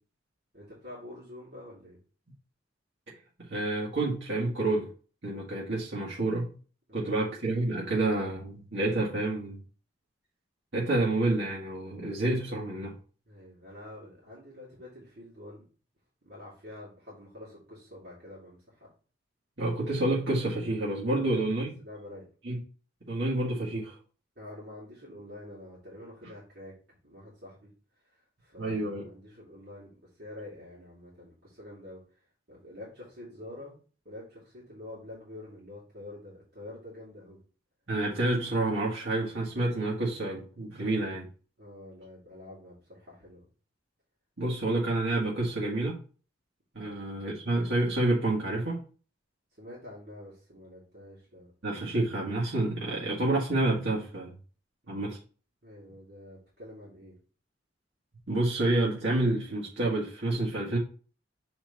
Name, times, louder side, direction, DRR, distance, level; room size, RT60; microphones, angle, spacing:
voice 1, 0.5-2.0 6.9-7.2 13.2-15.6 16.2-18.9 21.1-21.5 21.8-22.2 24.3-27.7 28.0-33.7 34.0-37.4 41.6-43.4 46.8-47.2 49.6-51.5 54.8-55.0 55.6-57.2, left 1 dB, 60° right, 3.1 m, -47 dB
voice 2, 3.5-4.9 5.2-6.5 6.9-9.6 10.7-12.9 19.6-21.7 22.4-22.6 23.1-24.0 28.6-29.0 37.9-41.3 44.4-46.0 46.7-48.8 51.6-54.3 54.9-55.2 58.3-60.8, right 2 dB, 85° right, 1.7 m, -28 dB
6.7 x 4.4 x 3.9 m
head